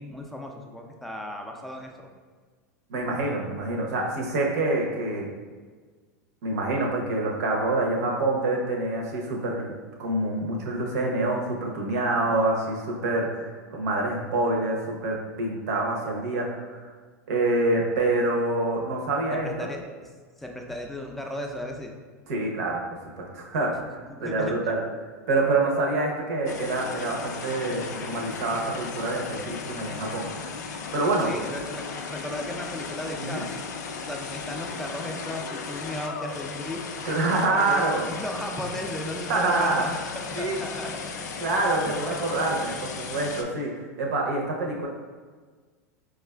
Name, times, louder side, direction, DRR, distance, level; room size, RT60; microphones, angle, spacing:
voice 1, 0.0-2.1 19.3-20.1 20.4-21.9 24.1-24.7 31.2-33.6 34.1-37.1 37.7-41.4 41.8-42.2, left 1 dB, ahead, 1 dB, 0.4 m, -36 dB
voice 2, 2.9-5.3 6.4-9.7 10.0-16.8 17.3-19.7 22.3-22.8 23.2-24.8 25.3-30.3 30.9-31.3 33.2-33.4 37.0-38.0 39.3-39.9 40.3-40.6 41.4-43.7 44.0-44.9, right 2 dB, 70° right, 0 dB, 0.8 m, -26 dB
sound 1, 26.5-43.4, left 5 dB, 80° left, 0.4 m, -36 dB
4.7 x 2.4 x 2.2 m, 1.5 s
hypercardioid pair, 100°, 9 cm